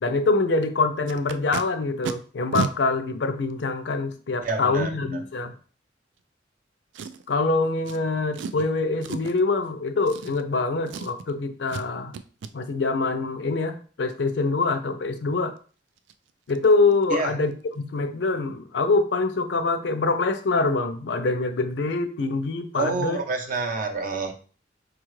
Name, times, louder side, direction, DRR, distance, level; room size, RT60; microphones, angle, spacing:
voice 1, 0.0-5.5 7.3-12.2 12.5-15.5 16.5-23.2, left 3 dB, 70° left, 9 dB, 0.5 m, -25 dB
Packing tape duct tape, 1.1-1.6 2.0-2.1 2.5-2.7 3.5-3.6 6.9-7.4 7.9-8.0 8.3-8.6 9.0-9.4 10.0-10.6 10.9-11.3 11.7-11.9 12.1-12.5 15.6-15.7 16.0-16.1 16.5-16.7 16.9-17.2 17.4-17.5, right 5 dB, 90° right, 0.3 m, -32 dB
voice 2, 4.4-5.2 17.1-17.3 22.7-24.3, right 3 dB, 50° right, 4 dB, 0.6 m, -28 dB
4.7 x 2.4 x 3.1 m, 0.40 s
head